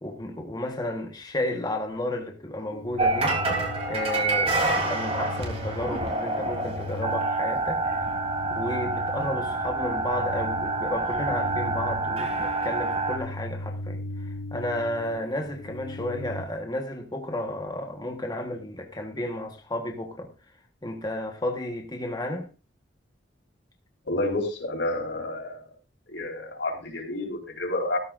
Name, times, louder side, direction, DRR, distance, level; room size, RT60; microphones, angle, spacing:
voice 1, 0.0-3.4 3.9-8.0 8.5-20.3 20.8-22.5, left 1 dB, 20° left, 1.3 m, -32 dB
sound 1, 2.7-16.5, left 1 dB, 50° left, 1.0 m, -39 dB
sound 2, 3.0-13.2, right 2 dB, 35° right, 3.4 m, -27 dB
voice 2, 24.0-25.6 26.1-28.0, left 2 dB, 90° left, 4.5 m, -29 dB
16.0 x 14.0 x 2.6 m
head